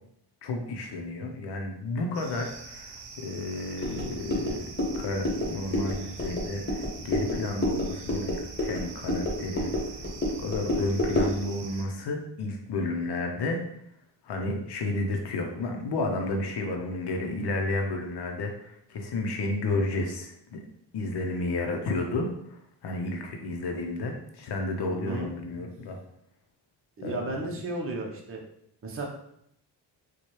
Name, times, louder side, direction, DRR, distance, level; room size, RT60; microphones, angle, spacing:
voice 1, 0.4-4.6 5.0-10.0 10.4-13.6 14.2-20.6 20.9-26.0 27.0-27.2, left 2 dB, 65° left, 3 dB, 0.7 m, -32 dB
sound 1, 2.1-11.8, right 4 dB, 75° right, 0.7 m, -45 dB
sound 2, 3.8-11.4, left 1 dB, 25° left, 1.2 m, -30 dB
voice 2, 24.9-25.3 27.0-28.4 28.8-29.0, right 2 dB, 30° right, -1 dB, 0.8 m, -34 dB
4.3 x 2.3 x 3.1 m, 0.74 s
cardioid pair, 70°, 42 cm